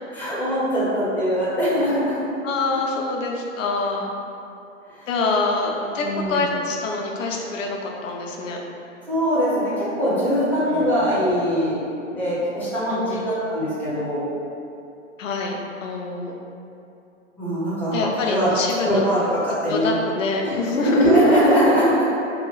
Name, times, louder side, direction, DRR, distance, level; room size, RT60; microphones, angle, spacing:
voice 1, 0.1-2.2 4.9-5.1 5.9-6.5 9.1-11.8 12.1-14.3 17.4-19.9 20.4-22.1, equal, 5° left, -11 dB, 0.8 m, -21 dB
voice 2, 2.4-4.1 5.1-8.6 10.5-11.0 12.9-13.3 15.2-16.3 17.9-18.9 19.2-19.3 19.7-21.3, left 3 dB, 75° left, 0 dB, 0.6 m, -26 dB
2.7 x 2.2 x 3.0 m, 2.6 s
hypercardioid pair, 120°, 38 cm